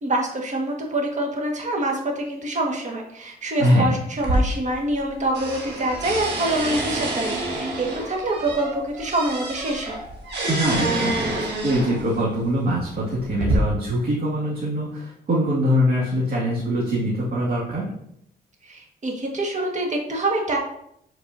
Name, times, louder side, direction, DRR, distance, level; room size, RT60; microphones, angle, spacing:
voice 1, 0.0-10.0 18.6-20.6, right 1 dB, 40° right, 0 dB, 1.7 m, -26 dB
voice 2, 3.6-4.0 10.5-17.9, equal, 60° right, -7 dB, 2.2 m, -23 dB
sound 1, 4.2-5.1 5.3-12.2 12.9-13.5, right 2 dB, 75° right, 1.7 m, -27 dB
7.7 x 4.5 x 2.7 m, 0.73 s
cardioid pair, 85°, 18 cm